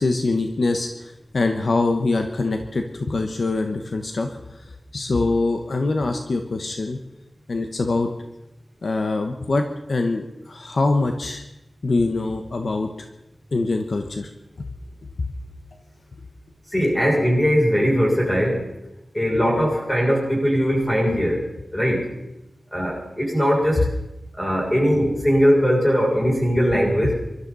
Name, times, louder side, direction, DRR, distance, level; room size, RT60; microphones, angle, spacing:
voice 1, 0.0-7.0 7.5-8.1 8.8-11.4 11.8-13.1 13.5-14.3 14.6-14.7 23.8-23.9 27.0-27.2, left 3 dB, 65° left, 5 dB, 1.2 m, -24 dB
voice 2, 16.7-18.6 19.1-21.4 21.7-22.1 22.7-23.9 24.4-27.2, equal, 15° left, -4 dB, 7.0 m, -20 dB
24.0 x 13.0 x 4.2 m, 0.93 s
wide cardioid pair, 90°, 0 cm